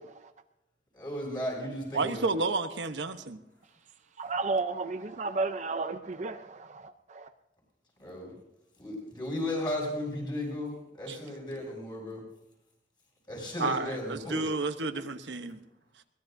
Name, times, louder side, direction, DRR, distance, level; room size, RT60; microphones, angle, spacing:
voice 1, 0.9-2.3 8.0-8.3 8.8-12.2 13.3-14.4, left 1 dB, 25° left, -1 dB, 7.4 m, -35 dB
voice 2, 1.9-3.4 11.1-11.2 13.6-15.6, right 3 dB, 90° right, 8 dB, 1.0 m, -31 dB
voice 3, 4.2-7.3, right 3 dB, 40° right, 8 dB, 0.6 m, -33 dB
22.5 x 18.5 x 2.7 m, 0.85 s
head